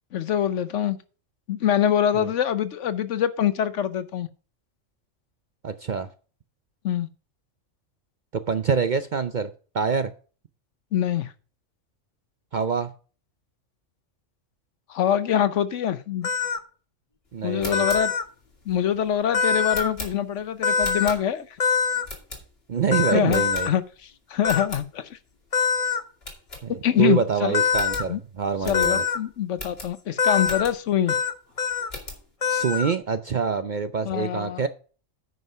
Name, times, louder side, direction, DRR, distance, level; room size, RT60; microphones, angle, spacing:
voice 1, 0.1-1.0 1.5-4.3 6.8-7.1 10.9-11.3 14.9-16.3 17.4-18.1 18.7-21.5 23.1-25.2 26.7-27.6 28.1-28.2 28.7-31.2 34.0-34.6, left 10 dB, 70° left, 14 dB, 1.1 m, -24 dB
voice 2, 5.6-6.1 8.5-10.1 12.5-12.9 17.3-17.8 22.7-23.7 26.6-29.0 32.5-34.7, right 6 dB, 50° right, 10 dB, 0.5 m, -26 dB
sound 1, 16.2-16.6 17.7-18.2 19.3-19.9 20.6-21.1 21.6-22.0 22.9-23.7 24.4-24.6 25.5-26.0 27.5-28.0 28.7-29.2 30.2-30.6 31.1-31.3 31.6-31.9 32.4-32.9, left 6 dB, 35° left, 0.8 m, -23 dB
sound 2, 17.4-21.6 22.0-22.8 23.3-24.1 24.4-24.9 25.3-25.4 25.7-25.8 26.2-27.1 27.4-27.5 27.7-31.0 31.5-32.3, left 2 dB, 50° left, 2.7 m, -40 dB
9.5 x 5.5 x 5.5 m, 0.38 s
omnidirectional pair, 1.3 m